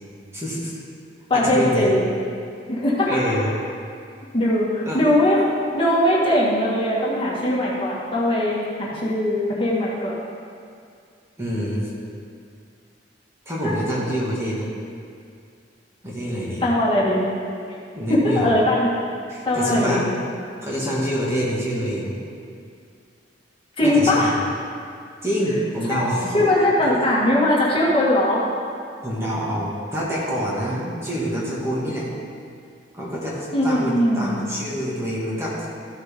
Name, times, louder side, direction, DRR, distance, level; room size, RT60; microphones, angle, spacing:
voice 1, 0.3-0.7 1.3-1.9 3.1-3.6 4.9-5.0 11.4-11.9 13.5-14.7 16.0-16.7 17.9-18.5 19.3-20.0 20.6-22.2 23.8-24.3 25.2-26.5 26.8-26.9 29.0-32.1 32.9-35.7, equal, 15° right, -6 dB, 1.9 m, -26 dB
voice 2, 1.3-2.1 2.7-3.3 4.3-5.5 5.7-10.2 13.6-13.7 16.6-17.3 18.1-18.9 19.4-20.2 23.8-24.4 25.9-26.0 26.3-28.4 33.5-34.4, left 1 dB, 30° left, -6 dB, 2.1 m, -20 dB
14.5 x 7.9 x 3.8 m, 2.3 s
head